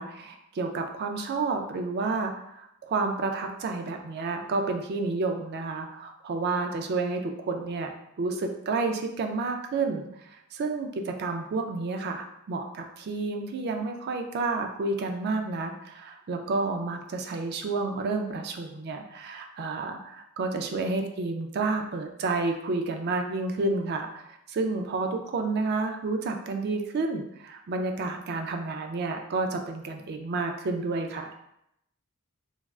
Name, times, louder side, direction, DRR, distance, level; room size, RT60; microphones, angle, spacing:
voice 1, 0.0-7.9 8.2-31.3, right 3 dB, 50° right, 4 dB, 0.3 m, -30 dB
3.3 x 2.3 x 2.3 m, 0.80 s
head